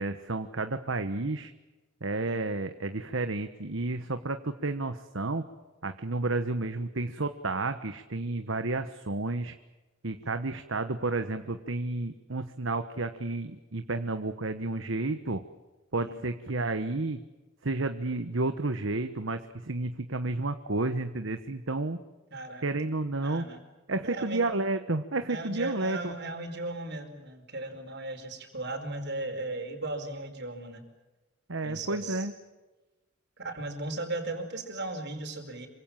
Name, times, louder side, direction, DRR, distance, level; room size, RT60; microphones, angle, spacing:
voice 1, 0.0-1.5 2.0-5.4 5.8-9.5 10.0-15.4 15.9-17.2 17.6-22.0 22.6-23.4 23.9-26.1 31.5-32.3, right 2 dB, 70° right, 9 dB, 1.2 m, -31 dB
voice 2, 22.3-22.7 23.2-23.6 24.0-24.5 25.3-30.8 31.6-32.3 33.4-35.7, right 2 dB, 55° right, 5 dB, 5.0 m, -37 dB
27.0 x 25.0 x 7.4 m, 1.1 s
head